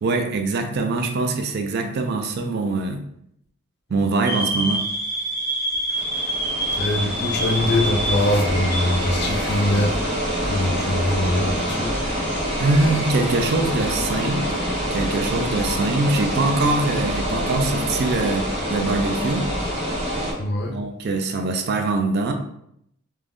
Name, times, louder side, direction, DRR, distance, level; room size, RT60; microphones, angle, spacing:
voice 1, 0.0-3.1 3.9-4.8 12.6-14.4 14.9-19.5 20.7-22.3, right 3 dB, 45° right, 5 dB, 0.3 m, -23 dB
sound 1, 4.2-13.1, right 1 dB, 15° left, 0.8 m, -29 dB
voice 2, 5.9-6.2 6.7-10.1 10.4-12.0 20.4-20.8, left 1 dB, 45° left, 2 dB, 0.4 m, -23 dB
sound 2, 5.9-20.3, equal, 25° right, 1.0 m, -26 dB
2.5 x 2.2 x 3.3 m, 0.72 s
head